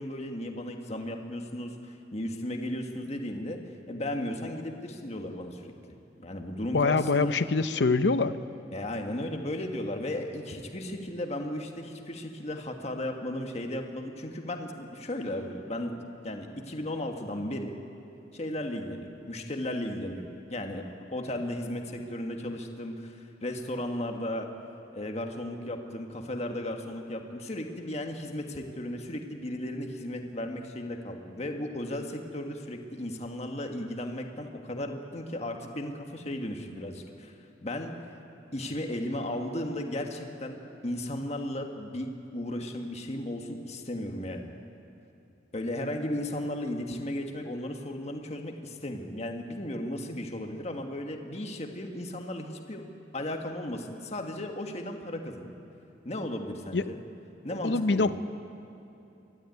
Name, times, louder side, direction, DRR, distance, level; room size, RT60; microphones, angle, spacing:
voice 1, 0.0-3.6 3.9-5.7 6.2-7.4 8.7-16.0 16.2-17.8 18.3-24.5 24.9-37.3 37.6-38.0 38.5-42.1 42.3-44.5 45.5-52.8 53.1-55.5 56.0-57.0 57.4-58.1, left 1 dB, 35° left, 3 dB, 1.6 m, -35 dB
voice 2, 6.7-8.4 56.7-56.8 57.6-58.1, left 3 dB, 70° left, 12 dB, 0.7 m, -24 dB
23.0 x 13.0 x 9.3 m, 3.0 s
head